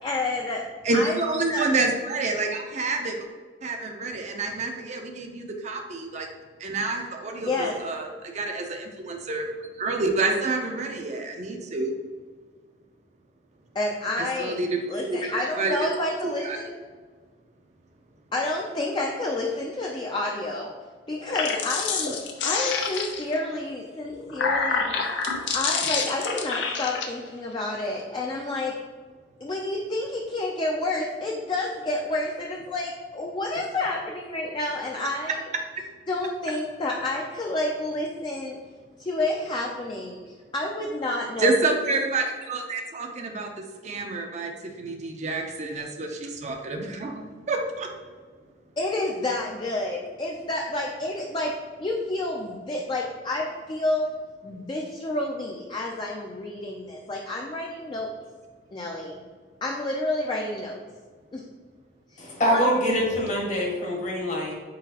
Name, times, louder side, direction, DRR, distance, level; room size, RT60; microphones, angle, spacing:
voice 1, 0.0-0.7 0.9-1.2 1.5-1.7 7.4-7.8 13.7-14.6 14.9-16.7 18.3-20.7 21.1-22.2 22.4-25.0 25.5-28.7 29.4-35.4 36.1-38.6 39.0-41.5 48.8-51.5 51.8-54.1 54.4-58.1 58.7-59.2 59.6-60.8 61.3-61.4 62.1-62.7, left 2 dB, 25° left, -1 dB, 0.4 m, -29 dB
voice 2, 0.8-3.2 3.6-6.3 6.6-9.5 9.8-11.9 14.4-14.7 15.1-15.8 16.4-16.6 41.4-43.5 43.8-44.5 44.8-47.2 47.5-47.6, right 3 dB, 40° right, 3 dB, 0.5 m, -28 dB
sound 1, 21.1-23.4 24.1-27.1, left 5 dB, 85° left, 0.5 m, -27 dB
voice 3, 62.2-64.5, equal, 40° left, -1 dB, 1.0 m, -24 dB
4.0 x 3.8 x 2.8 m, 1.5 s
head